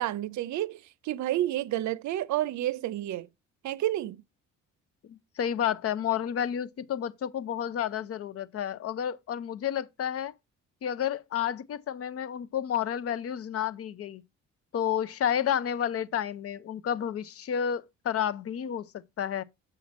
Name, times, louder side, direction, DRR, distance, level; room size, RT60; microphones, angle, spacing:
voice 1, 0.0-3.3 3.6-4.2, right 14 dB, 70° right, 0.6 m, -30 dB
voice 2, 5.0-10.3 10.8-14.2 14.7-18.9 19.2-19.4, left 9 dB, 50° left, 0.6 m, -30 dB
7.1 x 5.7 x 4.2 m
cardioid pair, 90°, 30 cm